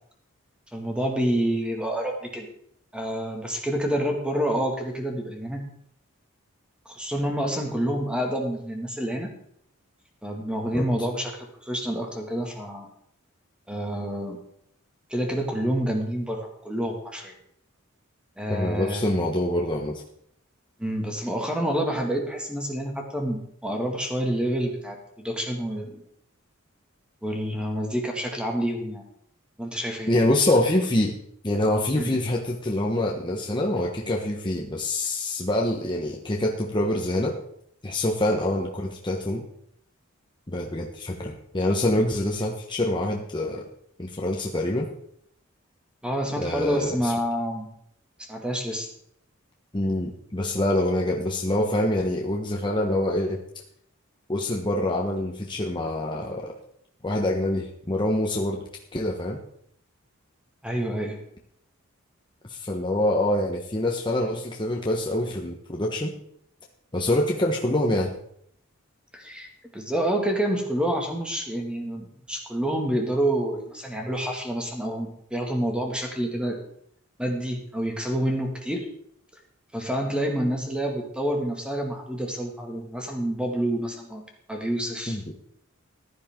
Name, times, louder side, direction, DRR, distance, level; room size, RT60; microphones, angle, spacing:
voice 1, 0.7-2.5 2.9-5.6 6.9-9.3 10.2-12.9 13.7-14.4 15.1-17.3 18.4-19.0 20.8-26.0 27.2-29.0 29.6-30.1 32.0-32.2 46.0-47.7 48.2-48.9 60.6-61.2 69.1-69.5 69.7-76.6 77.2-78.9 79.7-84.2 84.5-85.3, right 1 dB, 5° right, 2 dB, 2.0 m, -28 dB
voice 2, 18.5-20.0 30.1-31.1 31.4-37.4 37.8-39.4 40.5-43.6 44.0-44.9 46.4-47.1 49.7-53.4 54.3-56.5 57.0-58.6 58.9-59.4 62.5-66.1 66.9-68.1 85.1-85.3, left 1 dB, 20° left, -1 dB, 1.1 m, -25 dB
15.0 x 10.5 x 3.7 m, 0.69 s
head